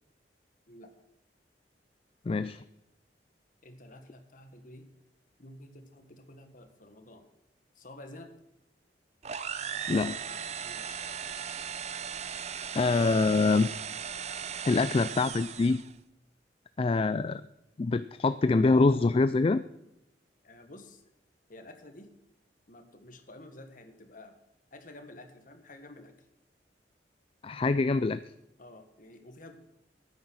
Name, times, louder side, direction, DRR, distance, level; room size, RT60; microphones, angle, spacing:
voice 1, 2.3-2.6 9.9-10.2 12.7-13.7 14.6-15.8 16.8-17.4 17.8-19.6 27.4-28.2, left 3 dB, 30° left, 13 dB, 0.4 m, -25 dB
voice 2, 3.6-4.9 5.4-7.3 7.8-8.3 10.6-11.1 20.4-21.0 21.5-22.1 22.7-24.4 24.7-26.1 28.6-29.6, left 1 dB, 50° left, 7 dB, 1.8 m, -50 dB
sound 1, 9.2-15.9, right 7 dB, 40° right, 0.7 m, -37 dB
10.5 x 9.4 x 6.3 m, 0.89 s
head